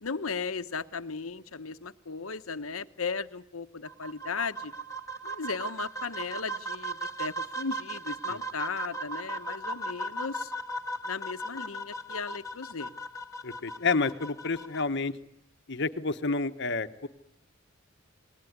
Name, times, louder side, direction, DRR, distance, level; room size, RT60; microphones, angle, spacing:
voice 1, 0.0-4.7 5.2-10.5 11.0-12.9, left 5 dB, 80° left, 11 dB, 1.1 m, -36 dB
sound 1, 3.8-14.8, right 2 dB, 15° left, 1.8 m, -37 dB
voice 2, 13.4-15.2 15.7-17.1, left 4 dB, 55° left, 9 dB, 1.3 m, -29 dB
28.5 x 21.0 x 9.6 m, 0.76 s
head